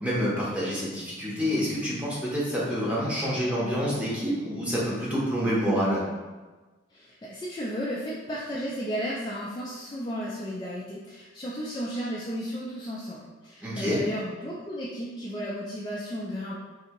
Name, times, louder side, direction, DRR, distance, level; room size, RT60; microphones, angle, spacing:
voice 1, 0.0-6.0 13.6-14.0, equal, 5° right, -7 dB, 0.8 m, -27 dB
voice 2, 6.9-16.6, equal, 20° left, -6 dB, 0.3 m, -34 dB
3.3 x 2.7 x 2.9 m, 1.3 s
head